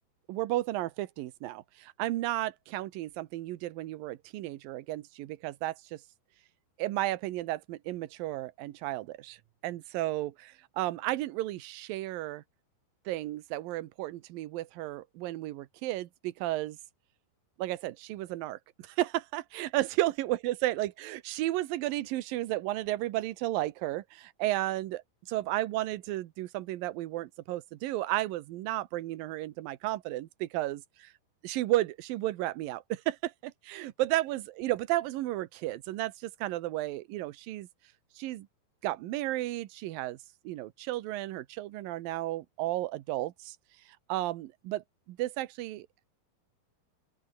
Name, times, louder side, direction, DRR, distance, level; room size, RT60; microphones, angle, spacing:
voice 1, 0.3-6.0 6.8-9.4 9.6-12.4 13.1-16.8 17.6-31.1 31.4-37.7 38.2-38.5 38.8-40.2 40.4-43.6 43.9-46.0, right 16 dB, 75° right, 2.7 m, -33 dB
open air
omnidirectional pair, 4.3 m